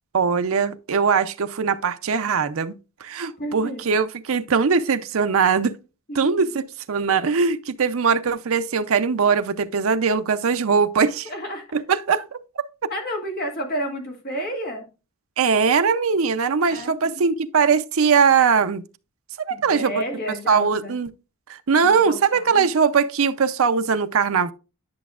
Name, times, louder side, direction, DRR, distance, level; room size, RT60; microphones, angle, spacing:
voice 1, 0.1-2.7 3.0-5.7 6.1-11.3 11.7-12.9 15.4-18.8 19.5-20.0 20.5-21.1 21.5-24.5, right 5 dB, 70° right, 0.6 m, -21 dB
voice 2, 3.4-3.8 6.1-6.3 11.2-11.6 12.9-14.9 16.7-17.2 19.5-20.9 21.8-22.7, equal, 45° left, 2.1 m, -31 dB
10.5 x 6.0 x 2.4 m
head